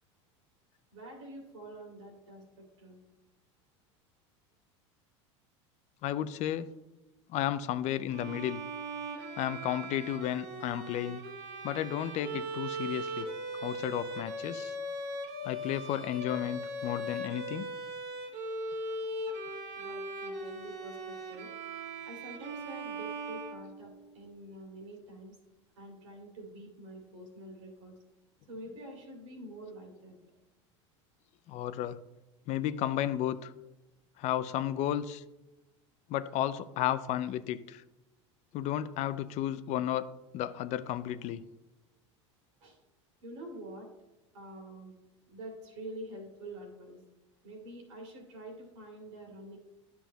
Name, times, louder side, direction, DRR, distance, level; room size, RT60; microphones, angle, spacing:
voice 1, 0.9-3.0 19.7-21.5 22.0-25.4 25.8-27.9 28.5-30.2 41.2-41.3 42.6-42.8 43.2-43.9 44.3-44.9 45.3-47.0 47.4-49.6, right 1 dB, 85° right, -1 dB, 2.6 m, -47 dB
voice 2, 6.0-6.7 7.3-8.6 9.4-11.2 11.6-13.3 13.6-14.7 15.4-17.7 28.7-28.8 31.5-32.0 32.5-33.5 34.2-35.2 36.1-37.8 38.5-41.4, left 11 dB, 50° left, 14 dB, 0.4 m, -33 dB
Bowed string instrument, 8.1-24.1, right 1 dB, 60° right, 1.5 m, -39 dB
10.5 x 7.0 x 2.2 m, 0.99 s
hypercardioid pair, 90°, 16 cm